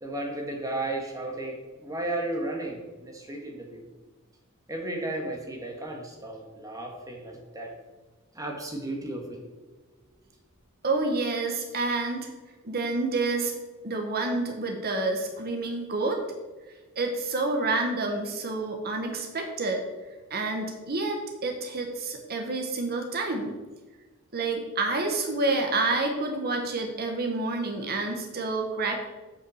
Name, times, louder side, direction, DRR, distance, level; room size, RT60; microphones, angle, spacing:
voice 1, 0.0-3.8 4.7-7.7 8.3-9.4, right 2 dB, 15° right, 1 dB, 1.6 m, -34 dB
voice 2, 10.8-12.3 12.6-13.5 13.8-16.2 17.0-19.8 20.3-23.6 24.3-29.0, right 3 dB, 45° right, 3 dB, 1.2 m, -28 dB
8.1 x 5.7 x 6.3 m, 1.2 s
head